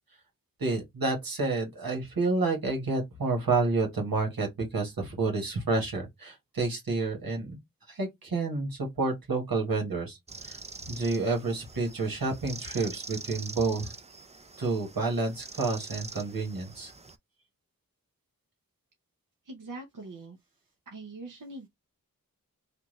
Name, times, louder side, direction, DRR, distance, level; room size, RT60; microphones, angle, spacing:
voice 1, 0.6-7.6 7.9-10.6 10.8-13.9 14.6-16.9, right 3 dB, 90° right, 1.5 m, -29 dB
sound 1, 10.3-17.2, right 3 dB, 20° right, 0.4 m, -44 dB
voice 2, 19.4-20.4 20.9-21.7, right 2 dB, 65° right, 0.8 m, -42 dB
3.3 x 2.4 x 3.2 m
wide cardioid pair, 55°, 34 cm